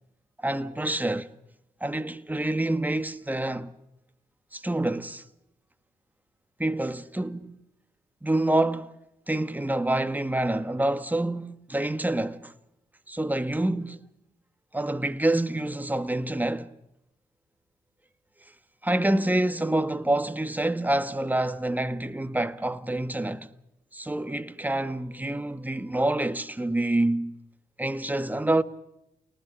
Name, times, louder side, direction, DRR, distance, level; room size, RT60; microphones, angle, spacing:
voice 1, 0.4-1.3 1.8-3.7 4.5-5.2 6.6-7.6 8.2-8.9 9.3-12.5 13.1-14.0 14.7-16.7 18.8-23.5 23.9-27.4 27.8-28.6, right 1 dB, 10° right, 1.6 m, -27 dB
29.5 x 19.0 x 6.7 m
hypercardioid pair, 45°, 17 cm